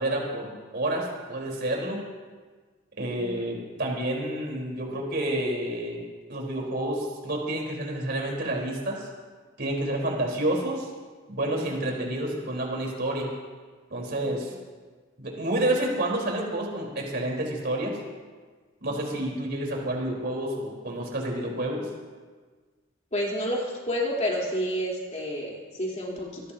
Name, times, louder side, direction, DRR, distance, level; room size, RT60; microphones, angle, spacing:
voice 1, 0.0-2.0 3.0-6.0 6.3-9.1 9.6-10.9 11.3-13.3 13.9-14.5 15.2-18.0 18.8-21.9, right 1 dB, 55° right, -2 dB, 4.5 m, -29 dB
voice 2, 23.1-26.4, equal, 35° left, -3 dB, 3.9 m, -29 dB
25.0 x 18.5 x 3.0 m, 1.4 s
head